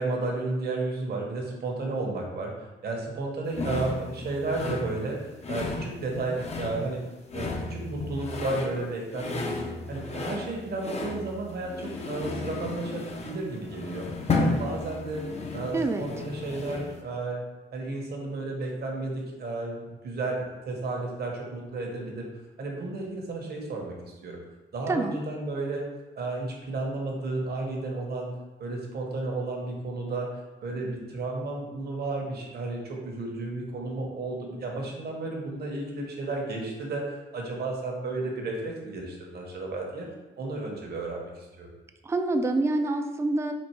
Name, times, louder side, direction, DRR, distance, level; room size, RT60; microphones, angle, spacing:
voice 1, 0.0-2.5 2.8-5.2 5.5-7.0 7.3-9.6 9.9-14.0 14.4-15.2 15.5-17.4 17.7-22.2 22.6-24.4 24.7-25.8 26.2-28.3 28.6-30.3 30.6-40.1 40.4-41.7, right 2 dB, 55° right, 0 dB, 1.2 m, -32 dB
sound 1, 3.5-17.0, left 3 dB, 35° left, 0.7 m, -34 dB
voice 2, 15.7-16.0 24.9-25.2 42.0-43.5, right 2 dB, 15° right, 6 dB, 0.4 m, -26 dB
4.3 x 2.5 x 4.6 m, 1.1 s
cardioid pair, 90°, 20 cm